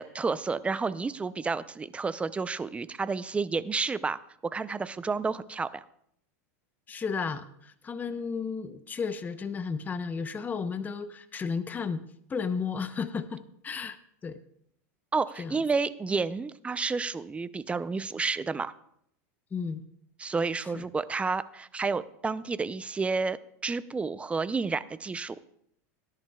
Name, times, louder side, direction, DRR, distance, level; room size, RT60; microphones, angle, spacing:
voice 1, 0.0-5.8 15.1-18.7 20.2-25.4, right 4 dB, 15° right, 15 dB, 0.5 m, -30 dB
voice 2, 6.9-12.0 12.3-14.0 14.2-14.4 15.4-15.6 19.5-19.8 20.7-20.8, left 5 dB, 20° left, 11 dB, 0.7 m, -33 dB
18.5 x 10.5 x 2.3 m, 0.70 s
supercardioid pair, 120°, 9 cm